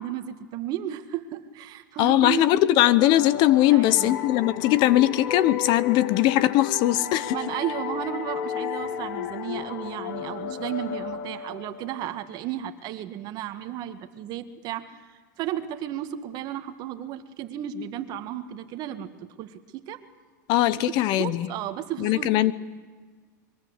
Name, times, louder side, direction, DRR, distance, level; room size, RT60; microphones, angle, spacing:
voice 1, 0.0-2.4 3.7-4.2 7.3-15.0 15.4-20.0 21.0-22.5, right 11 dB, 40° right, 10 dB, 1.8 m, -34 dB
voice 2, 2.0-7.4 20.5-21.5 22.0-22.5, left 14 dB, 45° left, 17 dB, 1.0 m, -20 dB
sound 1, 2.8-12.2, left 9 dB, 65° left, 2.0 m, -34 dB
24.5 x 22.5 x 8.2 m, 1.5 s
supercardioid pair, 130°, 10 cm